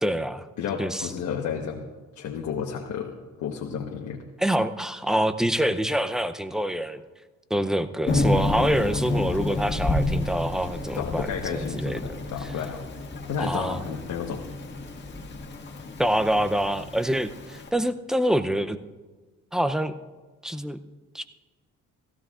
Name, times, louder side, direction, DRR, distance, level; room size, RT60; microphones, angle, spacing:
voice 1, 0.0-0.5 0.8-1.1 4.4-7.0 7.5-12.5 13.4-13.8 16.0-18.8 19.5-19.9 20.4-20.8 21.1-21.3, equal, ahead, 10 dB, 0.5 m, -26 dB
voice 2, 0.6-1.8 2.2-4.2 11.0-12.9 13.3-14.4, left 7 dB, 70° left, -1 dB, 1.2 m, -32 dB
Thunder / Rain, 8.1-17.7, left 2 dB, 35° left, 1.8 m, -30 dB
16.5 x 15.0 x 2.5 m, 1.3 s
cardioid pair, 90°, 30 cm